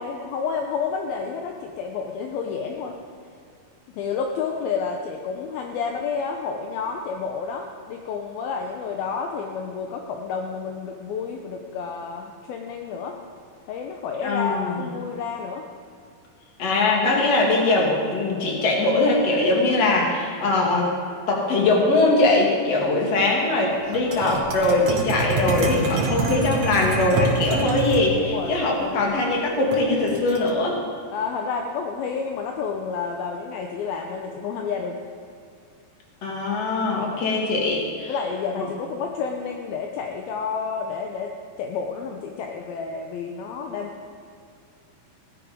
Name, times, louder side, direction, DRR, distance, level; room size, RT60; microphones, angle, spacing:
voice 1, 0.0-3.0 3.9-13.2 13.7-15.7 24.2-24.5 28.2-29.3 31.1-35.0 38.1-44.1, left 5 dB, 75° left, 2 dB, 2.5 m, -30 dB
voice 2, 14.2-14.8 16.6-20.9 21.3-30.8 36.2-38.1 38.6-38.7, left 2 dB, 45° left, -1 dB, 3.0 m, -21 dB
sound 1, 23.9-28.1 29.7-30.5, right 3 dB, 60° right, 2.2 m, -26 dB
17.0 x 11.0 x 5.1 m, 2.3 s
omnidirectional pair, 4.6 m